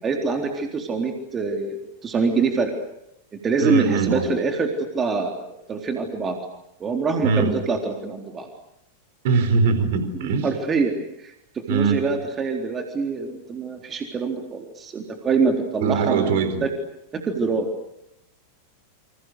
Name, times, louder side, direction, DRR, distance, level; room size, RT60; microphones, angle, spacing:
voice 1, 0.0-2.7 3.4-6.4 6.8-8.5 10.2-16.5 17.1-17.7, right 4 dB, 20° right, 3 dB, 3.9 m, -25 dB
voice 2, 3.6-4.3 7.2-7.5 9.2-10.5 11.7-12.0 15.8-16.6, right 4 dB, 55° right, 10 dB, 4.5 m, -21 dB
29.5 x 27.5 x 6.6 m, 0.81 s
figure-of-eight pair, 90°, 0 cm